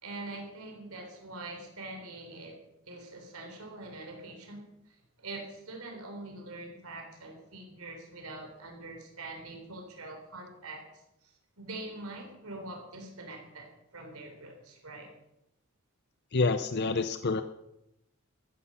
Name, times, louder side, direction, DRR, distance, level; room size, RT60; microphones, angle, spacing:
voice 1, 0.0-2.6 2.9-15.1, right 2 dB, 90° right, 3 dB, 3.8 m, -44 dB
voice 2, 16.3-17.4, left 3 dB, 50° left, 10 dB, 0.6 m, -27 dB
14.5 x 14.0 x 5.7 m, 0.85 s
head